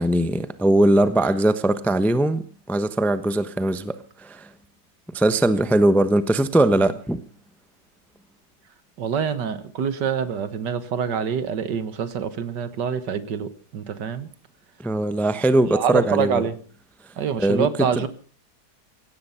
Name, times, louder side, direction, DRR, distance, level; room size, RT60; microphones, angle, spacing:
voice 1, 0.0-4.5 5.1-7.2 14.8-16.4 17.4-17.7 18.0-18.1, right 1 dB, ahead, 12 dB, 0.6 m, -20 dB
voice 2, 9.0-14.3 15.7-16.6 17.2-18.1, right 7 dB, 75° right, 13 dB, 1.9 m, -26 dB
17.0 x 14.5 x 5.7 m, 0.42 s
omnidirectional pair, 1.9 m